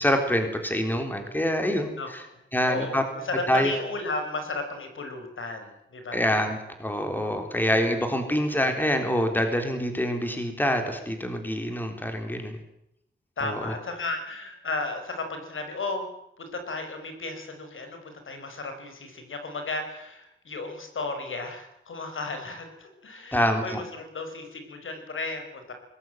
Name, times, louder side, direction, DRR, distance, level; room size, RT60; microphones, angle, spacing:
voice 1, 0.0-2.2 2.5-3.0 3.5-3.7 6.1-12.6 13.4-13.7 23.3-23.8, equal, 10° left, 5 dB, 3.7 m, -26 dB
voice 2, 2.6-6.3 8.3-8.4 13.4-16.0 16.4-25.7, left 3 dB, 85° left, 6 dB, 5.0 m, -34 dB
22.5 x 19.5 x 9.2 m, 0.80 s
wide cardioid pair, 150°, 20 cm